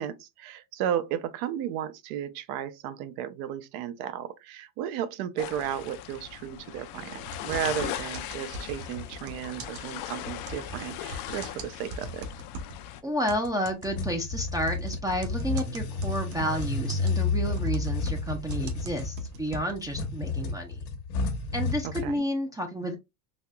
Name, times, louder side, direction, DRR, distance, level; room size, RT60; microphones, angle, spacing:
voice 1, 0.0-12.3 21.8-22.2, right 10 dB, 75° right, 0.7 m, -34 dB
sound 1, 5.4-13.0, left 12 dB, 55° left, 0.6 m, -39 dB
sound 2, 7.3-12.8 13.3-20.0, right 1 dB, 55° right, 1.1 m, -41 dB
voice 2, 13.0-20.8 21.5-23.0, equal, 10° right, 0.4 m, -31 dB
sound 3, 13.9-22.1, left 3 dB, 90° left, 1.2 m, -31 dB
4.2 x 2.9 x 2.2 m
supercardioid pair, 125°, 43 cm